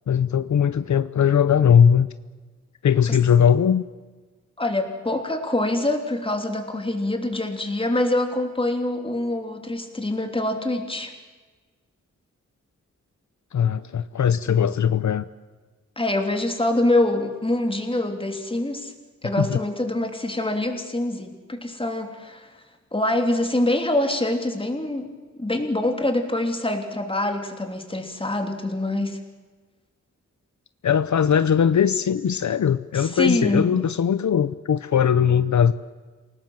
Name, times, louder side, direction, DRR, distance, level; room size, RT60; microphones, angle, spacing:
voice 1, 0.1-2.1 2.8-3.8 13.5-15.2 19.4-19.6 30.8-35.7, left 8 dB, 75° left, 13 dB, 0.7 m, -19 dB
voice 2, 4.6-11.1 16.0-18.9 19.2-22.5 22.9-25.1 25.4-29.2 32.9-33.7, left 1 dB, 20° left, 4 dB, 3.2 m, -25 dB
28.0 x 18.5 x 7.4 m, 1.3 s
wide cardioid pair, 125°, 30 cm